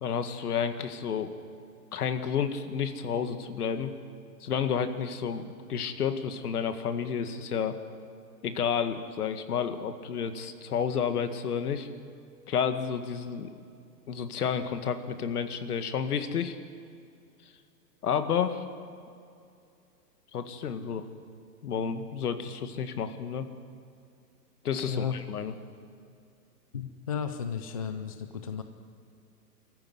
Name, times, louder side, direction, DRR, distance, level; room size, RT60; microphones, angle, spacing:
voice 1, 0.0-1.3 1.9-3.9 4.4-7.8 8.4-11.9 12.5-13.6 14.1-16.6 18.0-18.7 20.3-21.1 21.6-23.5 24.6-25.5, left 7 dB, 65° left, 8 dB, 2.1 m, -30 dB
voice 2, 26.7-28.6, left 7 dB, 25° left, 7 dB, 0.4 m, -34 dB
23.5 x 15.0 x 9.6 m, 2.5 s
hypercardioid pair, 160°, 49 cm